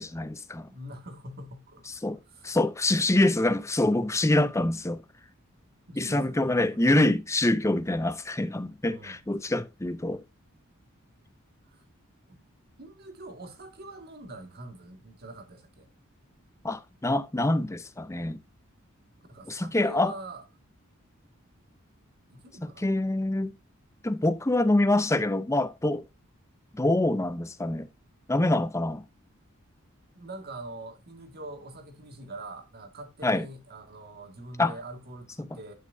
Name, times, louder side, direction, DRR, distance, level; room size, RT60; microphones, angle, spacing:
voice 1, 0.0-0.7 2.0-2.2 2.4-5.0 6.0-10.2 16.6-18.4 19.5-20.1 22.6-23.5 24.0-26.0 26.7-27.9 28.3-29.0 33.2-33.4 34.6-34.7 35.4-35.5, left 1 dB, 15° left, 0.6 m, -25 dB
voice 2, 0.7-1.9 2.3-2.5 5.9-6.9 8.9-9.2 11.7-11.8 12.8-15.9 19.3-20.4 22.3-22.9 30.1-35.7, right 2 dB, 50° right, 2.0 m, -44 dB
11.0 x 6.2 x 2.7 m
head